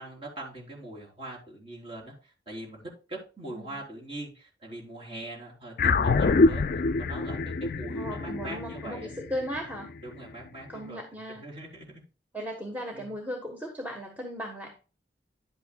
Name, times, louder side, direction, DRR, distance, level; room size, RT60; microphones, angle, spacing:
voice 1, 0.0-2.8 3.1-6.6 6.9-9.1 10.0-12.0 12.9-13.2, right 1 dB, 30° right, -3 dB, 3.8 m, -42 dB
sound 1, 5.8-10.4, left 3 dB, 50° left, 0.4 m, -26 dB
voice 2, 7.9-9.9 10.7-11.4 12.3-14.7, equal, 10° right, 0 dB, 1.2 m, -36 dB
10.5 x 8.5 x 2.3 m, 0.34 s
head